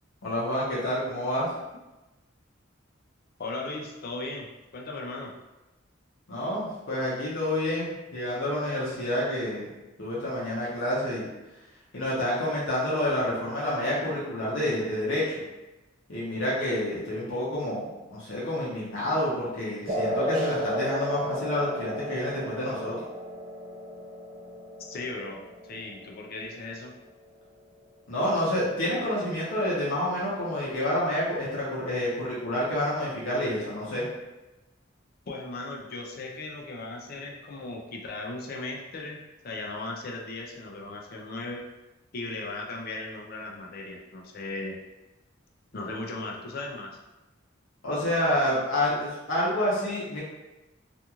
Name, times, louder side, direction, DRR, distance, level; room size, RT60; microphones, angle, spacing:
voice 1, 0.2-1.5 6.3-9.7 10.0-11.3 11.9-15.4 16.1-23.0 28.1-34.0 47.8-50.2, left 1 dB, 80° left, -8 dB, 0.8 m, -28 dB
voice 2, 3.4-4.5 4.7-5.3 24.8-26.9 35.3-39.2 39.4-41.6 42.1-44.8 45.7-46.9, left 2 dB, 50° left, 0 dB, 0.4 m, -37 dB
sound 1, 19.9-26.9, equal, 40° right, 1.1 m, -33 dB
2.9 x 2.5 x 2.4 m, 1.0 s
head